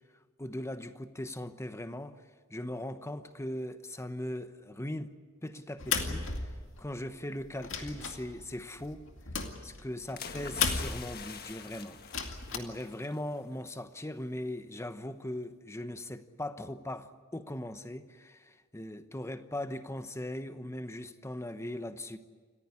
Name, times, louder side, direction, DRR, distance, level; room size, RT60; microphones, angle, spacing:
voice 1, 0.4-2.2 2.5-5.1 5.4-6.3 6.8-9.0 9.6-22.2, left 1 dB, 15° left, 1.0 m, -39 dB
sound 1, 5.8-7.0 7.4-11.3 12.0-12.6, left 5 dB, 65° left, 2.3 m, -35 dB
sound 2, 10.2-13.2 13.5-13.7, left 6 dB, 50° left, 1.5 m, -45 dB
28.0 x 15.0 x 9.6 m
head